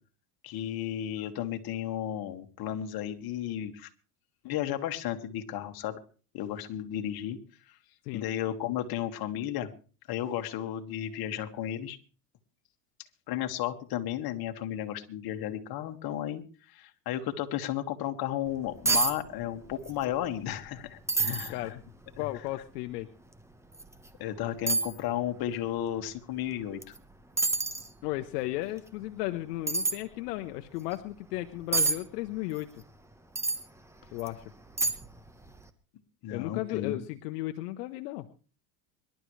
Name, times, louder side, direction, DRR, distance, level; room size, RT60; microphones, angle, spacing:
voice 1, 0.4-3.9 4.4-6.0 6.3-7.4 8.1-9.7 10.1-12.0 13.3-21.8 24.2-26.9 36.2-37.0, left 11 dB, 50° left, 6 dB, 2.0 m, -34 dB
sound 1, 18.5-18.6 18.9-19.2 19.4-20.0 20.3-20.4 21.1-21.5 22.2-22.3 23.7-23.9 24.7-24.9 26.8-27.0 27.4-27.9 29.7-30.0 31.7-32.0 33.4-33.6 34.2-34.3 34.8-35.2 35.5-35.6, right 3 dB, 5° right, 1.2 m, -27 dB
voice 2, 21.2-21.8 22.2-23.1 28.0-32.7 34.1-34.4 36.3-38.3, left 17 dB, 75° left, 7 dB, 1.1 m, -35 dB
25.0 x 12.0 x 3.2 m, 0.37 s
supercardioid pair, 115°, 47 cm